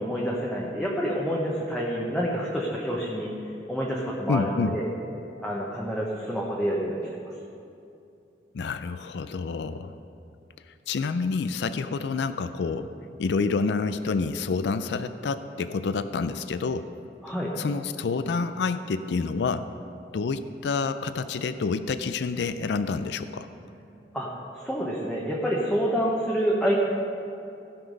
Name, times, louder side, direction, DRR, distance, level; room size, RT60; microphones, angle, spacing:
voice 1, 0.0-3.3 3.7-4.9 5.4-7.3 17.2-17.5 24.1-24.3 24.5-26.8, equal, 5° left, -5 dB, 1.0 m, -28 dB
voice 2, 4.3-4.8 8.5-9.9 10.9-12.9 13.2-16.9 17.6-19.7 20.1-23.5, left 4 dB, 70° left, 12 dB, 0.4 m, -28 dB
16.5 x 5.9 x 5.2 m, 2.6 s
head